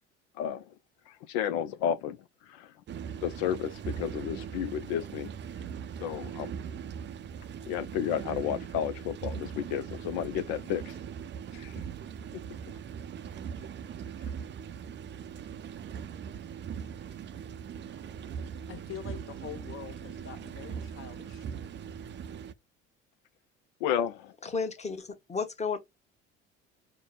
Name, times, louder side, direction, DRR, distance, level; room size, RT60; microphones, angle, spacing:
voice 1, 1.1-2.8 3.2-5.3 6.0-6.5 7.7-11.0 11.5-11.7 23.8-24.3, left 9 dB, 65° left, 0.5 m, -32 dB
sound 1, 2.9-22.5, right 7 dB, 35° right, 0.5 m, -40 dB
voice 2, 18.7-21.5, left 9 dB, 40° left, 1.0 m, -44 dB
voice 3, 24.4-25.8, left 5 dB, 20° left, 1.1 m, -33 dB
4.9 x 2.0 x 2.3 m
hypercardioid pair, 60°, 34 cm